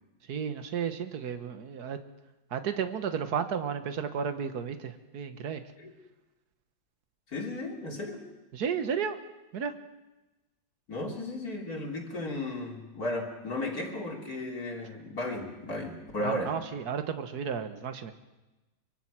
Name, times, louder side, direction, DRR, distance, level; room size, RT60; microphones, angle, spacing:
voice 1, 0.3-2.0 2.5-5.6 8.5-9.2 9.5-9.7 16.2-18.1, right 7 dB, 60° right, 8 dB, 1.8 m, -33 dB
voice 2, 7.3-8.2 10.9-16.5, left 1 dB, 50° left, 1 dB, 3.5 m, -35 dB
24.0 x 23.5 x 6.2 m, 1.1 s
omnidirectional pair, 2.0 m